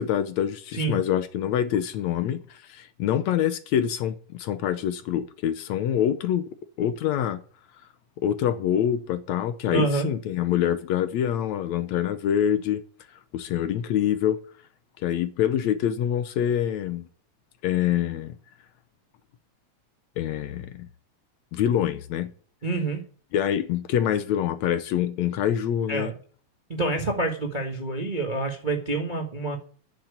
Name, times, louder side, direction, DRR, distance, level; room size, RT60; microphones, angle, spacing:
voice 1, 0.0-6.5 6.8-7.4 8.2-12.8 13.3-14.4 15.0-17.1 17.6-18.4 20.2-20.9 21.5-22.3 23.3-26.1, left 10 dB, 75° left, 2.0 m, -25 dB
voice 2, 9.7-10.1 22.6-23.0 25.9-26.1 26.7-29.6, right 3 dB, 25° right, 0.9 m, -27 dB
9.7 x 7.6 x 9.4 m
omnidirectional pair, 3.5 m